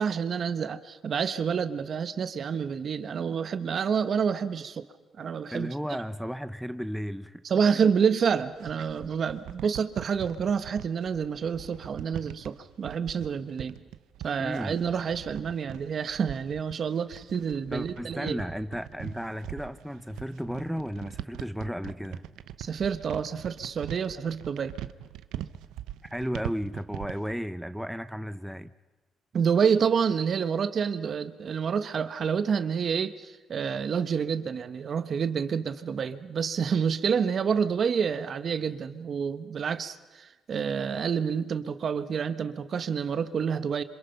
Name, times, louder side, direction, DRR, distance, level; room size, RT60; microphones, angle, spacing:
voice 1, 0.0-4.9 5.2-5.7 7.4-13.8 14.2-18.4 22.6-24.7 29.3-43.8, right 6 dB, 55° right, 1.3 m, -28 dB
voice 2, 5.5-7.4 7.7-7.9 14.4-14.7 17.7-22.2 26.1-28.7, equal, ahead, 0.8 m, -34 dB
sound 1, 8.2-27.3, right 12 dB, 90° right, 0.8 m, -41 dB
28.0 x 26.0 x 5.9 m
cardioid pair, 90°, 0 cm